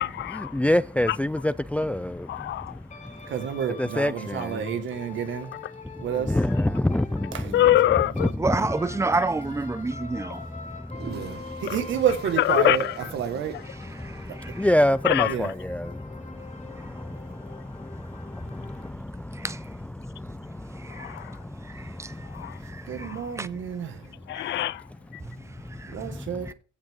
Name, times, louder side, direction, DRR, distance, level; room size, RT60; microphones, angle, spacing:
voice 1, 0.0-0.6 1.1-1.2 2.3-2.8 7.5-8.3 11.6-11.8 12.4-13.1 15.0-15.5 20.9-21.4 22.2-22.6 22.9-23.3 24.3-25.2, left 13 dB, 65° left, 0.4 m, -25 dB
voice 2, 0.5-3.3 3.8-4.7 6.3-7.5 8.2-8.6 9.7-10.0 10.4-11.6 14.0-19.6 20.0-23.2 25.4-26.5, left 1 dB, 5° left, 0.4 m, -29 dB
sound 1, 2.9-8.4 8.6-18.9, left 5 dB, 40° left, 1.6 m, -45 dB
voice 3, 3.3-5.5 6.0-6.4 7.3-7.5 11.0-12.8 13.1-13.6 15.3-15.5 22.8-24.1 25.9-26.5, right 8 dB, 75° right, 1.9 m, -29 dB
voice 4, 8.4-10.4 14.0-14.7 19.3-19.6 20.8-21.2 21.7-22.3 22.6-23.5 24.3-24.6 25.2-25.3 25.7-26.0 26.5-26.6, right 3 dB, 15° right, 0.7 m, -30 dB
sound 2, 10.8-15.2, right 6 dB, 55° right, 1.5 m, -48 dB
15.5 x 6.4 x 3.7 m
cardioid pair, 90°, 20 cm